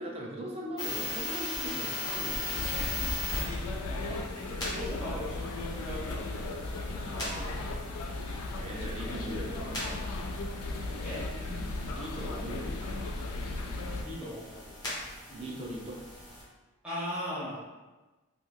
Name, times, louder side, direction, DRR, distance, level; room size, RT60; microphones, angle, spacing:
voice 1, 0.0-2.9 7.1-7.6 8.6-10.0 11.9-13.2 15.3-16.0, right 1 dB, 25° right, -2 dB, 0.4 m, -40 dB
sound 1, 0.8-16.4, left 2 dB, 20° left, 0.6 m, -40 dB
sound 2, 2.5-14.0, left 2 dB, 85° left, 0.4 m, -36 dB
voice 2, 3.9-7.2 8.5-8.7 11.0-11.6 14.0-14.7 15.3-15.5 16.8-17.6, left 1 dB, 5° right, -10 dB, 1.1 m, -40 dB
3.0 x 2.8 x 2.3 m, 1.2 s
head